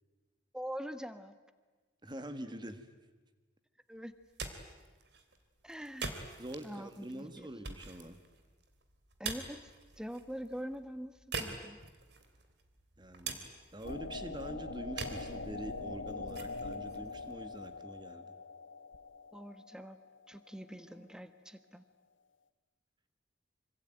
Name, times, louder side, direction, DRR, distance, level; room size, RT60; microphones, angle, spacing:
voice 1, 0.5-1.3 3.9-4.1 5.6-6.1 6.6-7.5 9.2-9.6 10.0-11.8 19.3-20.0 20.3-21.8, equal, 5° right, 11 dB, 1.2 m, -44 dB
voice 2, 2.0-2.9 6.4-8.2 13.0-13.4 13.7-18.3, right 1 dB, 25° right, 9 dB, 1.8 m, -45 dB
sound 1, 4.1-18.1, right 4 dB, 60° right, 3.0 m, -46 dB
sound 2, 13.8-20.5, left 3 dB, 80° left, 1.3 m, -43 dB
25.5 x 25.5 x 9.1 m, 1.3 s
head